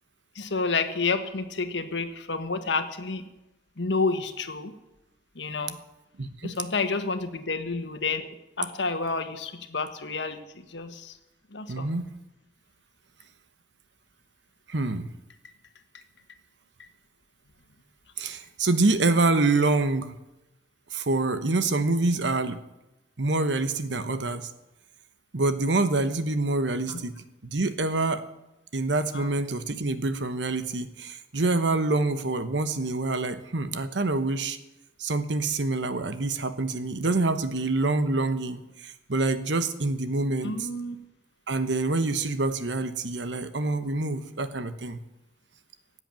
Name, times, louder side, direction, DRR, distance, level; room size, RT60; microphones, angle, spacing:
voice 1, 0.3-3.2 3.8-4.7 5.3-5.8 6.4-10.4 10.7-11.2 11.5-11.9 26.9-27.0 29.1-29.3 40.4-41.0, left 4 dB, 85° left, 8 dB, 1.4 m, -29 dB
voice 2, 6.2-6.5 11.7-12.1 14.7-15.1 18.2-20.2 20.9-22.6 23.2-24.5 25.3-28.2 28.7-34.6 35.0-40.7 41.5-45.0, right 2 dB, 85° right, 11 dB, 1.1 m, -26 dB
16.5 x 8.1 x 9.0 m, 0.95 s
head